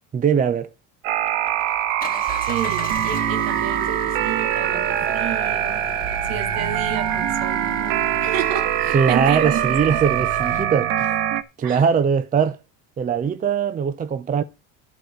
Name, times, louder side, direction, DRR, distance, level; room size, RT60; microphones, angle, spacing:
voice 1, 0.1-0.7 8.9-11.1 11.6-12.6 13.0-14.4, right 7 dB, 20° right, 0.6 m, -21 dB
sound 1, 1.0-11.4, right 12 dB, 85° right, 1.2 m, -23 dB
Engine, 1.1-10.6, left 7 dB, 25° left, 1.6 m, -36 dB
voice 2, 2.4-5.8 6.2-9.8 11.6-11.8, right 10 dB, 65° right, 2.0 m, -31 dB
11.5 x 4.9 x 7.8 m
cardioid pair, 145°, 37 cm